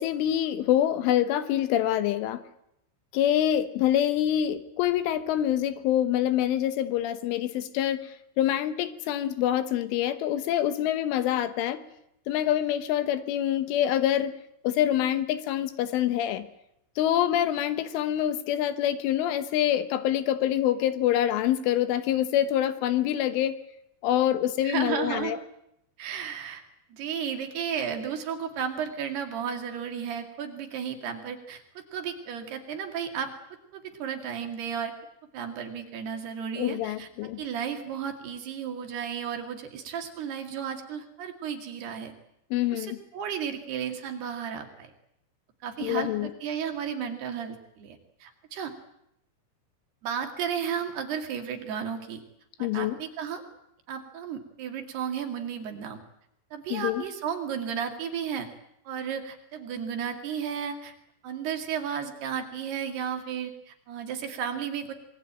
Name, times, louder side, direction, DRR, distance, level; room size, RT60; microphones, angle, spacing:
voice 1, 0.0-2.4 3.1-11.8 12.3-14.3 14.6-16.5 17.0-23.6 24.0-25.4 36.6-37.4 42.5-43.0 45.8-46.3 52.6-53.0 56.7-57.0, left 11 dB, 80° left, 11 dB, 3.7 m, -26 dB
voice 2, 24.6-25.3 26.0-26.6 26.9-33.3 33.7-34.9 35.3-42.1 42.7-44.9 45.6-48.7 50.0-52.2 52.6-53.4 53.9-56.0 56.5-58.5 58.9-60.9 61.2-64.9, right 7 dB, 60° right, 5 dB, 4.0 m, -33 dB
25.5 x 22.0 x 8.9 m, 0.79 s
omnidirectional pair, 5.7 m